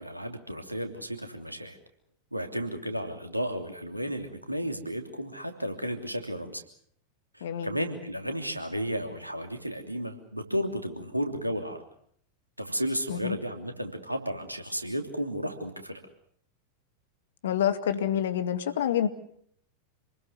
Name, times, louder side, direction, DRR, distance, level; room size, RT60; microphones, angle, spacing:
voice 1, 0.0-1.8 2.3-6.6 7.3-11.8 12.6-16.0, equal, 90° right, 5 dB, 3.0 m, -33 dB
voice 2, 7.4-7.7 13.1-13.4 17.4-19.1, left 9 dB, 60° left, 10 dB, 2.2 m, -27 dB
27.5 x 20.5 x 6.9 m, 0.64 s
figure-of-eight pair, 90°, 0 cm